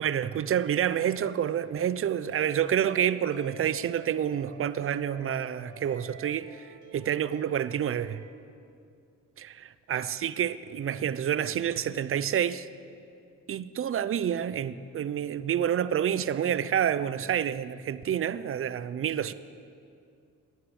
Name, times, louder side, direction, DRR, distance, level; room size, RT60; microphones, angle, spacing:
voice 1, 0.0-6.6 6.9-8.2 9.4-9.5 9.9-12.7 13.5-19.3, right 9 dB, 45° right, 0.6 m, -28 dB
sound 1, 2.2-8.3, right 4 dB, 75° right, 1.9 m, -49 dB
16.0 x 10.5 x 7.1 m
cardioid pair, 90°, 30 cm